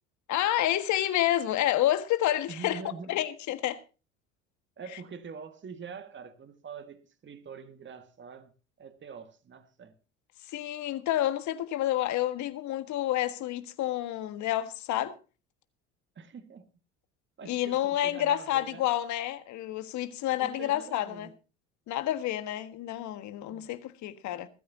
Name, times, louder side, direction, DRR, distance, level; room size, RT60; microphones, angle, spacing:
voice 1, 0.3-2.8 3.1-3.8 10.5-15.1 17.4-21.3 21.9-24.5, left 13 dB, 55° left, 1.6 m, -29 dB
voice 2, 2.5-3.2 4.8-8.5 8.8-10.0 16.2-16.7 17.4-18.9 20.3-21.3 23.4-23.8, right 6 dB, 35° right, 1.9 m, -45 dB
20.5 x 13.5 x 2.8 m
hypercardioid pair, 70°, 35 cm